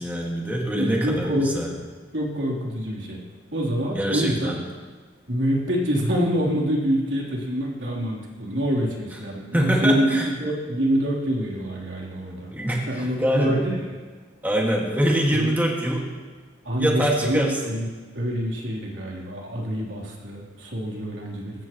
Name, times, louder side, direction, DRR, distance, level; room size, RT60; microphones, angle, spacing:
voice 1, 0.0-1.8 3.9-4.6 9.5-10.3 12.5-13.6 14.4-16.1 16.8-17.6, right 1 dB, 10° right, -2 dB, 2.0 m, -24 dB
voice 2, 0.7-1.5 2.1-3.2 3.5-4.5 5.3-12.5 12.9-13.9 15.3-15.5 16.7-17.9 18.1-21.6, equal, 75° right, -3 dB, 3.6 m, -26 dB
22.5 x 15.5 x 3.1 m, 1.4 s
head